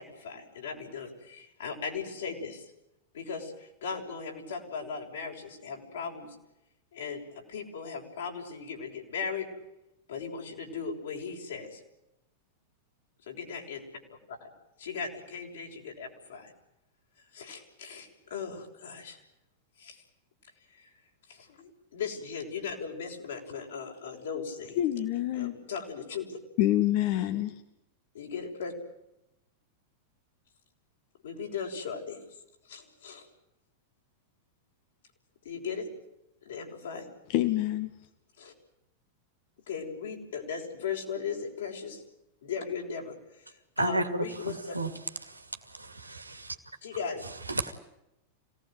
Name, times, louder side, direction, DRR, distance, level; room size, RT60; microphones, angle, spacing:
voice 1, 0.0-2.7 3.1-6.4 6.9-9.5 10.1-11.8 13.3-13.8 14.3-14.5 14.8-16.5 17.3-19.2 19.8-20.0 20.7-20.9 21.3-24.8 25.3-26.4 28.1-28.7 31.2-32.2 32.7-33.3 35.4-35.9 36.4-37.1 38.4-38.5 39.7-42.0 42.4-44.8 46.8-47.2, left 6 dB, 70° left, 0 dB, 6.3 m, -38 dB
voice 2, 24.8-25.6 26.6-27.5 37.3-37.9, left 13 dB, 50° left, 8 dB, 1.9 m, -26 dB
voice 3, 43.8-44.9 45.2-45.4 45.7-46.6 47.5-47.7, right 2 dB, 90° right, 7 dB, 2.4 m, -32 dB
27.0 x 18.5 x 9.2 m, 0.88 s
figure-of-eight pair, 95°, 0 cm